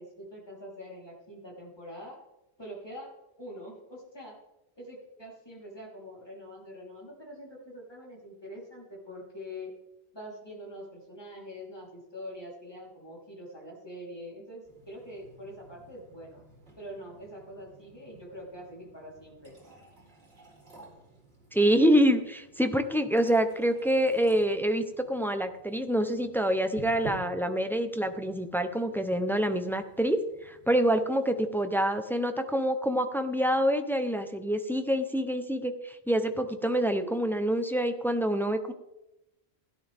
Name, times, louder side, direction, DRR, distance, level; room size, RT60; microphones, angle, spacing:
voice 1, 0.0-2.2 2.6-3.1 3.4-4.4 4.8-9.7 10.1-16.4 16.8-19.5 37.0-37.2, equal, 20° left, -4 dB, 3.8 m, -44 dB
sound 1, 14.6-31.0, right 2 dB, 65° right, 3.4 m, -52 dB
voice 2, 21.5-38.7, equal, ahead, 7 dB, 0.6 m, -26 dB
16.5 x 10.5 x 3.5 m, 0.92 s
omnidirectional pair, 1.1 m